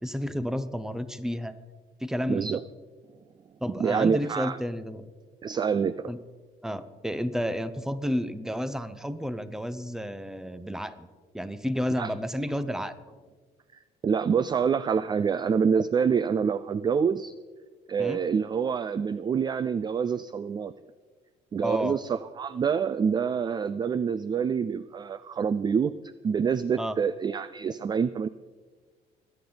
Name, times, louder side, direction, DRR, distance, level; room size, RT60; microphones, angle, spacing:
voice 1, 0.0-1.6 2.0-2.6 3.6-5.1 6.1-6.2 6.6-11.1 11.3-12.9 18.0-18.2 21.6-22.0 26.8-27.0, equal, 5° right, 13 dB, 0.8 m, -31 dB
voice 2, 2.3-2.6 3.8-4.6 5.4-6.1 12.0-12.1 14.0-17.3 17.9-20.7 21.5-25.9 26.2-28.3, right 6 dB, 25° right, 15 dB, 0.3 m, -26 dB
23.0 x 8.8 x 4.0 m, 1.4 s
cardioid pair, 110°, 17 cm